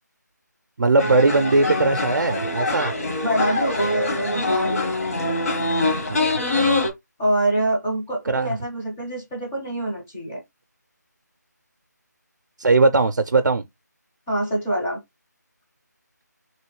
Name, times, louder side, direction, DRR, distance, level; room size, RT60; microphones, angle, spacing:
voice 1, 0.8-2.9 6.1-6.4 8.2-8.6 12.6-13.6, right 3 dB, 70° right, 0.4 m, -19 dB
sound 1, 1.0-6.9, left 2 dB, 50° left, 1.1 m, -24 dB
voice 2, 3.2-4.8 7.2-10.4 14.3-15.0, right 1 dB, 5° left, 0.4 m, -25 dB
3.0 x 2.7 x 2.9 m
figure-of-eight pair, 170°, 10 cm